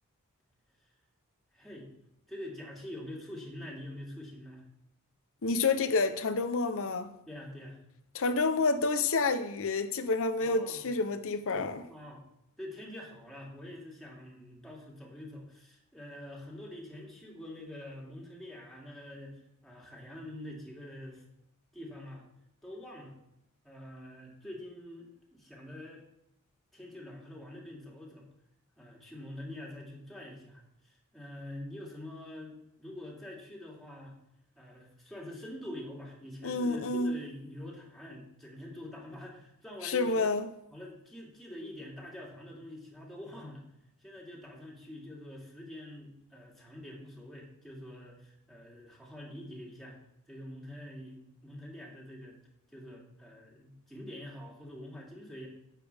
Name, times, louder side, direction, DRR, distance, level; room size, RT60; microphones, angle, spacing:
voice 1, 1.5-1.9 2.3-4.6 7.3-7.8 10.4-10.9 11.9-12.2 12.6-21.2 21.7-22.2 22.6-23.2 23.6-26.0 26.7-28.3 28.8-34.1 34.6-40.3 40.7-43.6 44.0-50.0 50.3-52.4 52.7-55.5, left 1 dB, ahead, 2.5 m, -45 dB
voice 2, 5.4-7.1 8.1-11.9 36.4-37.2 39.8-40.5, left 3 dB, 65° left, 0.7 m, -29 dB
10.0 x 8.4 x 3.4 m
head